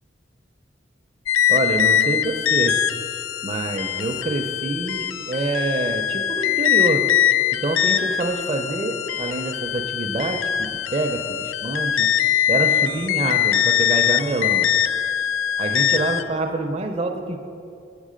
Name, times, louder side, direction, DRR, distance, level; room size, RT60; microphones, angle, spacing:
sound 1, 1.3-16.2, left 10 dB, 85° left, 0.3 m, -22 dB
voice 1, 1.5-2.8 3.4-7.1 7.6-12.1 12.5-14.7 15.6-17.4, right 2 dB, 30° right, 5 dB, 0.4 m, -26 dB
7.3 x 7.1 x 5.0 m, 2.5 s
head